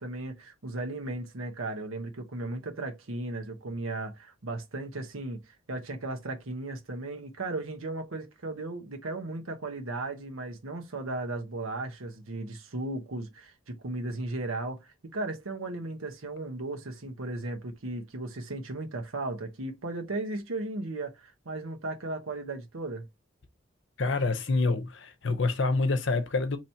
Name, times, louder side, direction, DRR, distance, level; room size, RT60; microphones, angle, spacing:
voice 1, 0.0-23.1, right 2 dB, 90° right, 1.0 m, -36 dB
voice 2, 24.0-26.6, left 3 dB, 60° left, 0.7 m, -27 dB
3.0 x 2.8 x 4.4 m
head